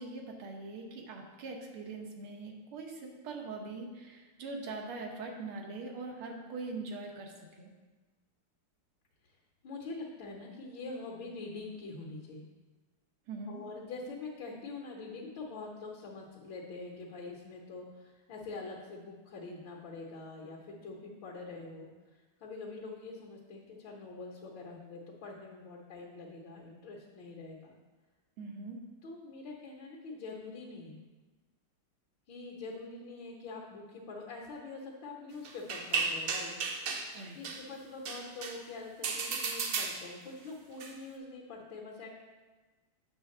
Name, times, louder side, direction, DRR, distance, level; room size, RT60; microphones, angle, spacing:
voice 1, 0.0-7.7 13.3-13.6 28.4-28.8 37.1-37.4, right 3 dB, 85° right, 2 dB, 1.9 m, -42 dB
voice 2, 9.6-12.5 13.5-21.9 22.4-27.7 29.0-31.0 32.3-36.5 37.3-42.1, left 3 dB, 65° left, -3 dB, 1.7 m, -44 dB
sound 1, 35.4-37.1 37.4-37.6 38.0-38.6 39.0-40.3 40.8-40.9, right 4 dB, 70° right, 1.3 m, -34 dB
8.5 x 3.4 x 6.5 m, 1.3 s
omnidirectional pair, 2.3 m